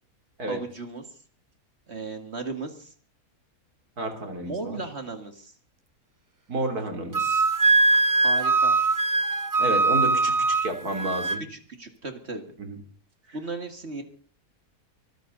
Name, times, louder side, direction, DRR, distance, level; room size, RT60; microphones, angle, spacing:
voice 1, 0.5-1.0 1.9-2.9 4.4-5.5 8.2-8.8 11.5-12.4 13.3-14.0, right 3 dB, 40° right, 6 dB, 2.3 m, -35 dB
voice 2, 4.0-4.8 6.5-7.5 9.6-11.4 12.6-12.8 13.3-13.4, right 1 dB, 70° right, 5 dB, 4.1 m, -31 dB
Wind instrument woodwind instrument, 7.1-11.4, right 3 dB, 25° right, 0.4 m, -22 dB
24.0 x 14.5 x 4.0 m, 0.40 s
omnidirectional pair, 1.7 m